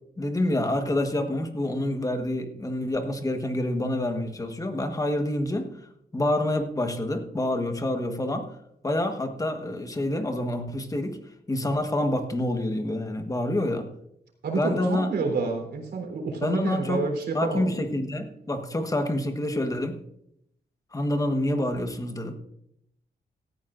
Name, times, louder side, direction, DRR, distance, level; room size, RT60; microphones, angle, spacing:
voice 1, 0.2-5.7 6.1-8.6 8.8-11.2 11.5-13.9 14.5-15.1 16.4-17.1 17.3-19.9 20.9-22.3, left 1 dB, 20° left, 6 dB, 1.3 m, -27 dB
voice 2, 14.4-17.7, right 4 dB, 75° right, 3 dB, 3.7 m, -29 dB
17.5 x 14.0 x 2.5 m, 0.78 s
wide cardioid pair, 145°, 17 cm